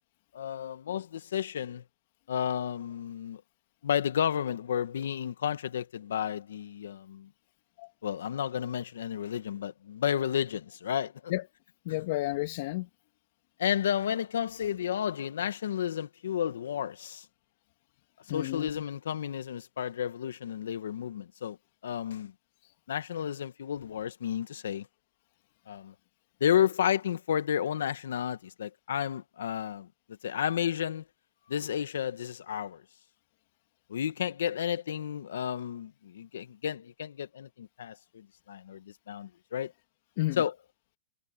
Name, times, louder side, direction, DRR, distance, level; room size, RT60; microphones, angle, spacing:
voice 1, 0.3-1.8 2.3-3.4 3.8-7.3 8.0-11.3 13.6-17.3 18.3-21.6 21.8-22.3 22.9-24.9 25.7-25.9 26.4-29.9 30.2-31.0 31.5-32.8 33.9-39.7 40.4-40.5, left 9 dB, 80° left, 1.9 m, -32 dB
voice 2, 11.8-12.9 18.3-18.8 40.2-40.4, left 18 dB, 50° left, 2.7 m, -31 dB
hypercardioid pair, 140°, 0 cm